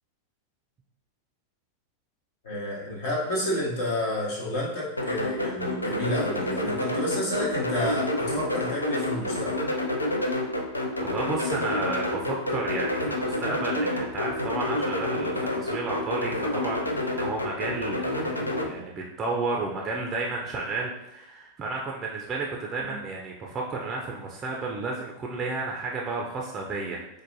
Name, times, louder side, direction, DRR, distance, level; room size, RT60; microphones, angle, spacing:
voice 1, 2.4-9.7 22.9-23.0, left 1 dB, 55° left, -5 dB, 0.9 m, -30 dB
sound 1, 5.0-18.7, left 1 dB, 85° left, 0.3 m, -29 dB
voice 2, 11.0-27.0, right 3 dB, 25° right, -1 dB, 0.4 m, -32 dB
4.5 x 2.1 x 2.6 m, 0.86 s
figure-of-eight pair, 90°, 0 cm